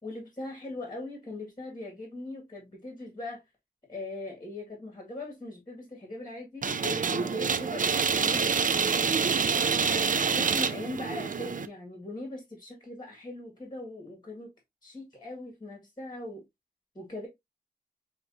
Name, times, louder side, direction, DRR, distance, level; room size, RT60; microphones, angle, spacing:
voice 1, 0.0-3.4 3.9-8.5 10.3-14.5 14.8-16.4 16.9-17.3, left 2 dB, 25° left, 1.7 m, -40 dB
sound 1, 6.6-11.7, right 6 dB, 55° right, 0.4 m, -27 dB
5.8 x 2.9 x 2.6 m
wide cardioid pair, 70°, 17 cm